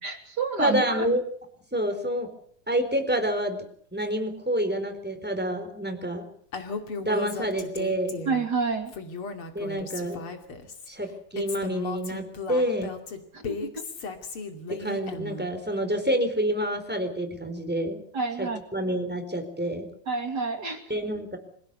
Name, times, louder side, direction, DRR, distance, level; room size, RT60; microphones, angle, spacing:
voice 1, 0.0-1.1 8.3-8.9 13.3-13.8 18.1-18.6 20.1-20.8, right 4 dB, 30° right, 5 dB, 2.8 m, -29 dB
voice 2, 0.6-1.2 1.7-2.3 2.7-3.6 3.9-6.2 7.0-8.2 9.5-10.2 10.9-12.9 14.8-18.0 18.4-19.9 20.9-21.4, equal, 5° right, 5 dB, 3.8 m, -28 dB
Female speech woman speaking, 6.5-8.5 8.9-10.9 11.4-15.5, left 4 dB, 40° left, 3.0 m, -36 dB
26.5 x 17.0 x 8.4 m, 0.64 s
omnidirectional pair, 4.3 m